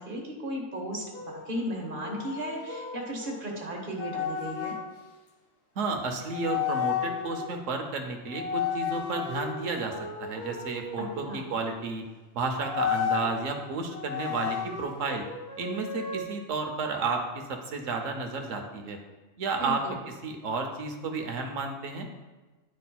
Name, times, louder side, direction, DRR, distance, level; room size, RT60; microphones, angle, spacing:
voice 1, 0.0-4.7 11.0-11.4 19.6-20.0, right 1 dB, 40° right, -1 dB, 1.3 m, -35 dB
sound 1, 1.1-4.8 5.9-6.0 6.3-7.6 8.3-11.7 12.5-13.3 13.9-16.2, left 7 dB, 90° left, 1.6 m, -34 dB
voice 2, 5.8-12.0 12.3-15.2 15.6-17.2 17.5-19.0 19.4-19.8 20.2-22.1, right 4 dB, 75° right, 4 dB, 1.1 m, -32 dB
10.5 x 4.2 x 2.2 m, 1.2 s
omnidirectional pair, 1.4 m